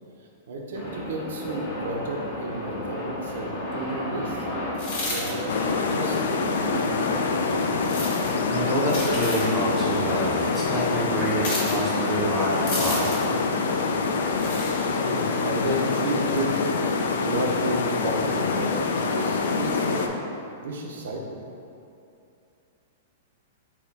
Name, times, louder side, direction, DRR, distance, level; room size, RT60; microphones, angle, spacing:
voice 1, 0.5-4.7 5.1-7.0 14.5-16.7 17.2-20.1 20.6-21.4, right 1 dB, 75° right, 0 dB, 0.6 m, -32 dB
sound 1, 0.7-15.0, left 1 dB, 40° left, 0.8 m, -35 dB
sound 2, 4.7-5.3 7.8-8.3 8.9-9.5 11.4-11.8 12.7-13.3 14.3-14.7, left 2 dB, 65° left, 1.4 m, -31 dB
sound 3, 5.5-20.1, left 4 dB, 80° left, 0.3 m, -26 dB
voice 2, 8.5-13.3 13.8-14.0 14.6-14.9, right 1 dB, 10° right, -6 dB, 0.5 m, -27 dB
4.2 x 2.2 x 4.0 m, 2.7 s
hypercardioid pair, 150°, 0 cm